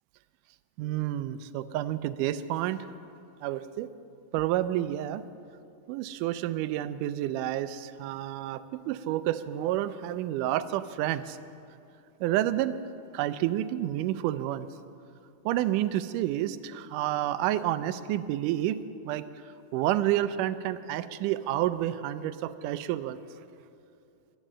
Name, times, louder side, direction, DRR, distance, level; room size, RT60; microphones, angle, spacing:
voice 1, 0.8-2.9 3.4-3.9 4.3-5.2 5.9-11.4 12.2-12.8 13.1-14.7 15.5-18.8 19.0-19.2 19.7-23.2, right 13 dB, 80° right, 13 dB, 2.0 m, -29 dB
14.5 x 11.5 x 7.3 m, 2.5 s
omnidirectional pair, 3.8 m